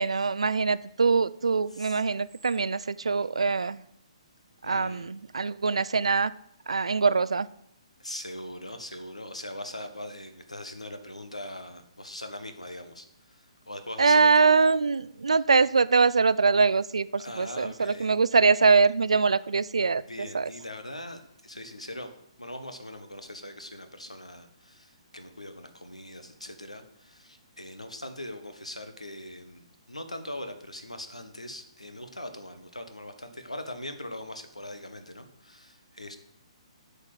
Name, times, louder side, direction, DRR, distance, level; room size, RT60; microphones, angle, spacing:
voice 1, 0.0-3.8 4.6-6.3 6.7-7.5 14.0-20.0 20.3-20.5, right 4 dB, 65° right, 17 dB, 0.4 m, -23 dB
voice 2, 4.6-5.1 8.0-14.5 17.2-18.1 19.8-22.1 22.4-36.2, left 1 dB, 85° left, 8 dB, 1.4 m, -41 dB
8.2 x 5.6 x 7.8 m, 0.74 s
figure-of-eight pair, 130°, 3 cm